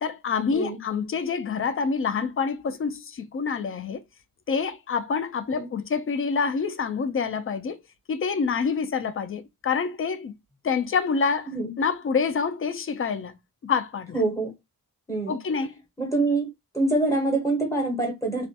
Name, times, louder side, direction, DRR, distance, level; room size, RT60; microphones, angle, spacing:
voice 1, 0.0-4.0 4.5-7.8 8.1-10.3 10.6-11.5 11.8-13.4 13.6-14.2 15.3-15.8, left 5 dB, 35° left, 0.4 m, -27 dB
voice 2, 14.1-14.5 15.1-15.4 16.0-16.5 16.7-18.5, right 2 dB, 10° left, 0.8 m, -25 dB
2.4 x 2.2 x 2.6 m
wide cardioid pair, 145°, 37 cm